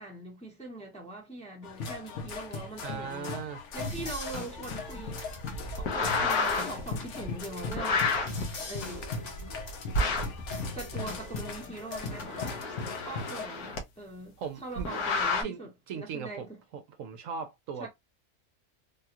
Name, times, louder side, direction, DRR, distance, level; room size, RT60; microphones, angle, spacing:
voice 1, 0.0-3.3 3.7-5.3 5.7-8.1 8.7-9.1 10.7-12.7 13.0-16.6 17.8-17.9, right 2 dB, 5° left, 0.7 m, -42 dB
sound 1, 1.6-13.5, left 3 dB, 60° left, 0.9 m, -39 dB
voice 2, 2.8-3.6 14.4-14.9 15.4-15.6 15.9-17.9, right 6 dB, 70° right, 0.9 m, -38 dB
Phazed Gator Beats, 3.8-12.7, left 2 dB, 45° left, 0.6 m, -43 dB
sound 2, 5.8-6.8 7.7-8.4 9.9-10.4 12.0-13.8 14.8-15.4, left 3 dB, 80° left, 1.3 m, -29 dB
3.4 x 2.3 x 2.8 m
omnidirectional pair, 1.5 m